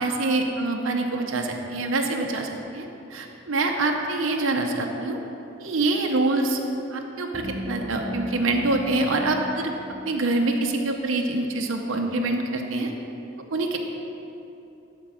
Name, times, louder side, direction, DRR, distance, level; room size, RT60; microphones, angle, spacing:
voice 1, 0.0-5.2 5.6-6.6 6.9-9.8 10.0-12.9 13.5-13.8, right 2 dB, 85° right, 2 dB, 0.8 m, -25 dB
sound 1, 7.3-10.9, equal, 15° left, 1.0 m, -37 dB
12.5 x 4.6 x 6.1 m, 2.9 s
head